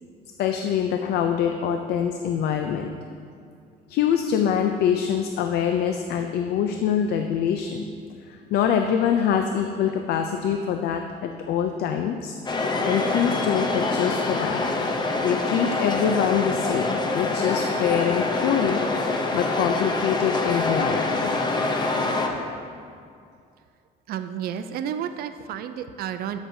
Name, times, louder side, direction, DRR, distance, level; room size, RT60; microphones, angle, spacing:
voice 1, 0.4-3.0 3.9-7.9 8.3-12.3 12.8-14.6 15.2-18.8 19.3-21.3 22.3-22.5, left 8 dB, 70° left, 5 dB, 0.5 m, -24 dB
sound 1, 12.5-22.3, left 3 dB, 25° left, 0.7 m, -25 dB
voice 2, 24.1-26.4, right 9 dB, 65° right, 10 dB, 0.4 m, -31 dB
12.5 x 6.1 x 2.7 m, 2.3 s
cardioid pair, 110°, 17 cm